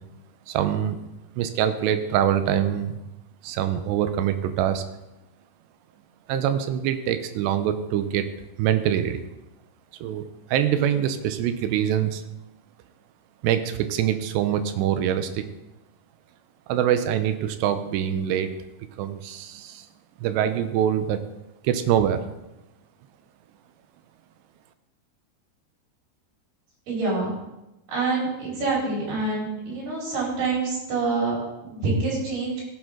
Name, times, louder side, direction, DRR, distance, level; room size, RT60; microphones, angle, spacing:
voice 1, 0.5-1.0 1.4-3.0 3.4-4.8 6.3-8.3 8.6-9.2 10.0-12.2 13.4-15.4 16.7-18.5 19.0-19.9 20.2-21.2 21.6-22.2, right 10 dB, 80° right, 10 dB, 2.9 m, -24 dB
voice 2, 26.9-27.3 27.9-32.6, right 3 dB, 65° right, -5 dB, 6.8 m, -26 dB
16.0 x 8.9 x 3.8 m, 0.96 s
omnidirectional pair, 5.0 m